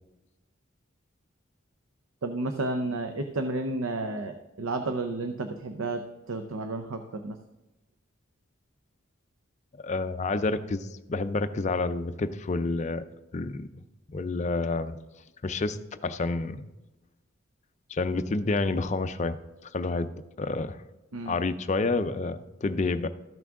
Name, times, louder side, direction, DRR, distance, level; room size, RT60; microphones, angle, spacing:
voice 1, 2.2-7.4 21.1-21.3, right 2 dB, 80° right, 7 dB, 0.6 m, -32 dB
voice 2, 9.8-13.0 13.3-13.7 14.1-15.0 15.4-16.7 17.9-19.4 19.7-20.1 20.4-20.8 21.3-23.1, left 3 dB, 35° left, 10 dB, 0.4 m, -29 dB
13.5 x 6.0 x 3.6 m, 1.0 s
head